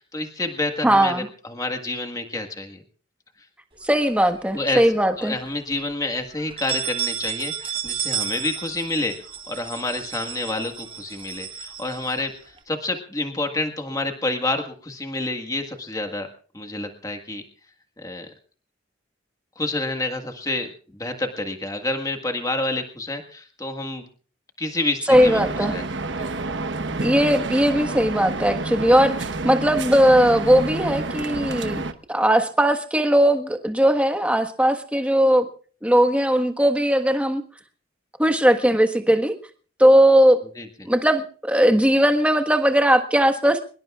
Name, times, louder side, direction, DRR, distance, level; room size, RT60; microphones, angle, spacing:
voice 1, 0.0-2.8 4.5-4.8 5.2-9.1 9.5-16.3 16.5-17.4 18.0-18.3 19.5-24.0 24.6-25.8 26.2-26.3 40.5-40.9, left 2 dB, 20° left, 5 dB, 1.6 m, -28 dB
voice 2, 0.8-1.3 3.8-5.3 25.1-25.7 27.0-31.8 32.1-35.5 35.8-37.4 38.2-39.3 39.8-40.4 40.8-43.6, equal, 5° right, 7 dB, 1.4 m, -18 dB
sound 1, 3.9-4.8 5.2-5.3 5.7-5.8 6.4-12.6, right 9 dB, 30° right, 1.6 m, -32 dB
sound 2, 25.1-31.9, right 2 dB, 80° right, 1.1 m, -29 dB
23.5 x 21.5 x 2.4 m, 0.41 s
head